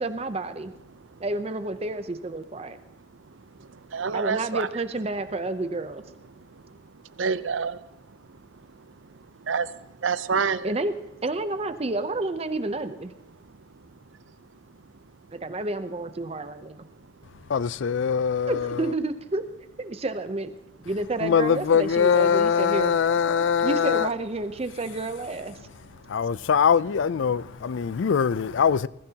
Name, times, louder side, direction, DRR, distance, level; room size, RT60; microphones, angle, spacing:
voice 1, 0.0-0.7 1.2-2.8 4.1-6.0 10.6-10.9 11.2-13.1 15.3-16.9 18.5-19.4 19.8-20.5 20.8-23.0 23.6-25.6, right 2 dB, 30° right, 0.6 m, -30 dB
voice 2, 0.5-1.3 1.9-4.8 5.2-10.8 11.8-11.9 12.5-15.8 16.2-18.5 19.9-20.0 20.6-20.9 23.1-23.7 24.5-26.5 27.3-28.1, right 5 dB, 90° right, 0.6 m, -35 dB
voice 3, 17.5-18.9 21.2-24.1 26.1-28.9, left 7 dB, 75° left, 0.4 m, -22 dB
21.0 x 15.0 x 2.9 m
head